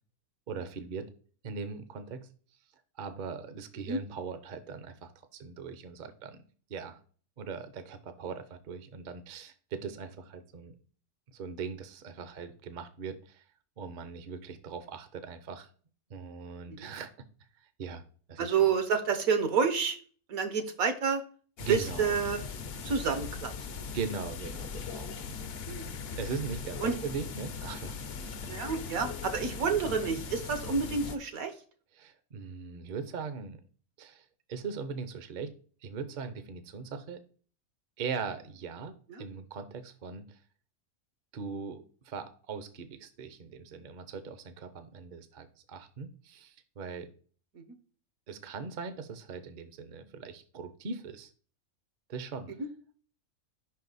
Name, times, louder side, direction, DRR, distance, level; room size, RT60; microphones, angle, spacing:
voice 1, 0.5-1.1 1.4-2.3 3.0-6.4 6.7-7.0 7.4-10.8 11.3-13.4 13.8-15.7 16.1-17.1 17.8-18.0 18.3-18.7 21.6-22.2 23.9-25.1 26.2-28.4 32.0-33.6 34.0-35.5 35.8-37.2 38.0-40.4 41.3-47.1 48.3-51.3 52.1-52.5, right 5 dB, 45° right, 10 dB, 0.7 m, -40 dB
voice 2, 18.4-20.0 20.3-21.2 21.7-22.4 22.8-23.5 25.7-26.2 26.8-26.9 28.5-31.5 39.1-39.3 52.6-52.7, right 6 dB, 75° right, 8 dB, 1.4 m, -29 dB
sound 1, 21.6-31.2, left 6 dB, 55° left, 0.7 m, -39 dB
5.4 x 4.7 x 3.9 m, 0.42 s
omnidirectional pair, 1.5 m